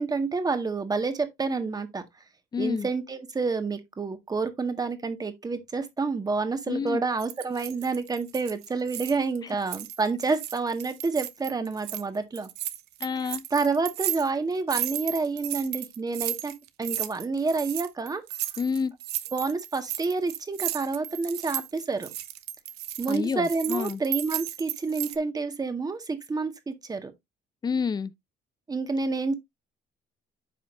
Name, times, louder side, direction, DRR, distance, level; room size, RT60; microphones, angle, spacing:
voice 1, 0.0-2.0 2.6-12.5 13.5-16.5 16.8-18.2 19.3-22.1 23.0-27.1 28.7-29.3, right 4 dB, 20° right, 1.7 m, -28 dB
voice 2, 2.5-2.9 6.7-7.0 13.0-13.4 18.6-18.9 23.1-24.0 27.6-28.1, left 5 dB, 25° left, 0.6 m, -28 dB
sound 1, 7.2-9.4 9.6-12.0 12.3-25.2, right 12 dB, 75° right, 1.0 m, -34 dB
9.5 x 5.7 x 2.6 m
cardioid pair, 110°, 17 cm